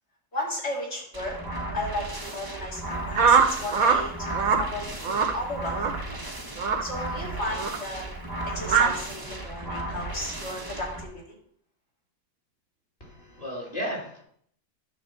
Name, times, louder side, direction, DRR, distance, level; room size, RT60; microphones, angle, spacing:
voice 1, 0.3-1.4 1.7-5.8 6.8-8.1 8.5-11.2, left 1 dB, 45° left, -2 dB, 2.6 m, -34 dB
sound 1, 1.1-11.0, right 1 dB, 20° right, 0.8 m, -35 dB
sound 2, 3.1-4.0 4.3-4.6 5.0-5.3 5.7-6.0 6.6-6.8 7.5-7.8 8.7-8.9, right 6 dB, 75° right, 1.3 m, -21 dB
voice 2, 13.0-14.2, equal, 25° left, -2 dB, 2.1 m, -34 dB
9.5 x 3.5 x 6.8 m, 0.64 s
omnidirectional pair, 1.5 m